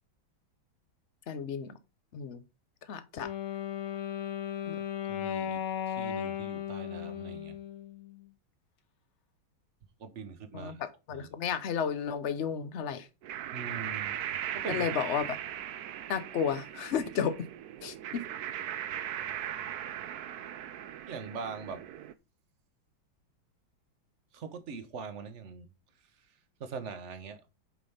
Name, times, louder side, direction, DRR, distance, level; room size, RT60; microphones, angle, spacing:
voice 1, 1.3-1.8 2.1-2.4 2.9-3.3 4.6-4.8 10.5-13.1 14.7-15.4 16.1-17.5 17.8-18.2, left 7 dB, 65° left, 0.7 m, -33 dB
Wind instrument woodwind instrument, 3.2-8.2, left 10 dB, 85° left, 2.0 m, -36 dB
voice 2, 5.1-5.6 5.9-7.6 10.0-10.8 11.1-11.3 13.5-14.2 14.5-14.9 21.1-21.8 24.3-25.7 26.6-27.4, right 5 dB, 45° right, 1.2 m, -41 dB
sound 1, 13.2-22.1, right 11 dB, 65° right, 1.0 m, -38 dB
7.9 x 5.2 x 5.5 m
omnidirectional pair, 2.2 m